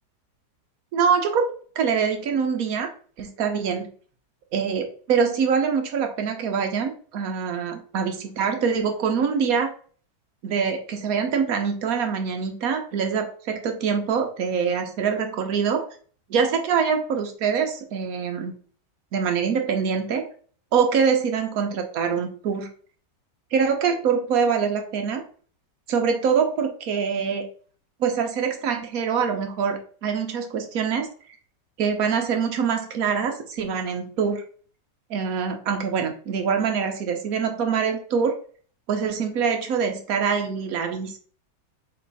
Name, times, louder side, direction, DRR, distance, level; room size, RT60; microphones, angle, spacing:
voice 1, 0.9-1.5 1.8-2.9 3.2-3.9 4.5-9.7 10.4-15.9 16.3-18.5 19.1-20.3 20.7-22.7 23.5-25.2 25.9-27.5 28.0-31.1 31.8-34.4 35.1-38.3 38.9-41.2, right 6 dB, 60° right, 5 dB, 1.1 m, -24 dB
3.9 x 3.2 x 3.9 m, 0.43 s
omnidirectional pair, 1.9 m